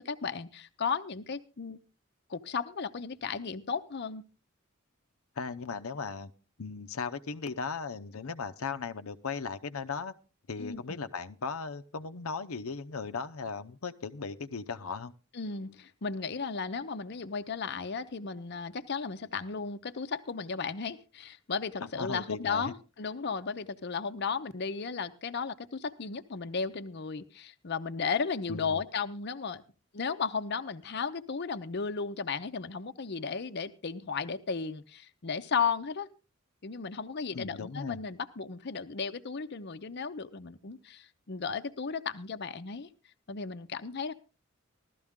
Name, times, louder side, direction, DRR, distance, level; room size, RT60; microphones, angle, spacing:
voice 1, 0.0-1.8 2.3-4.2 10.6-11.0 15.3-29.6 29.9-36.1 36.6-42.9 43.3-44.1, left 5 dB, 50° left, 8 dB, 0.7 m, -35 dB
voice 2, 5.4-6.3 6.6-10.1 10.5-15.1 22.0-22.7 28.5-28.8 37.3-38.0, left 5 dB, 85° left, 9 dB, 0.7 m, -37 dB
16.0 x 12.5 x 3.6 m, 0.32 s
head